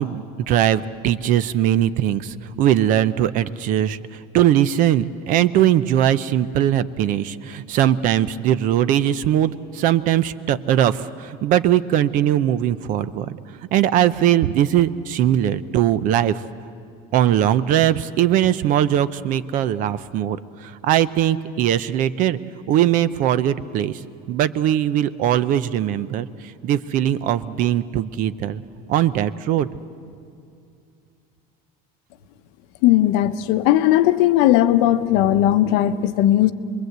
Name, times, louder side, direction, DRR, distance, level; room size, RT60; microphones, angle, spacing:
voice 1, 0.0-4.0 4.3-13.3 13.7-16.3 17.1-20.4 20.8-22.4 22.7-23.9 24.3-26.3 26.6-28.6 28.9-29.7, right 11 dB, 45° right, 15 dB, 0.6 m, -20 dB
voice 2, 32.8-36.5, left 13 dB, 65° left, 11 dB, 0.9 m, -17 dB
26.5 x 21.5 x 8.0 m, 2.5 s
cardioid pair, 150°, 19 cm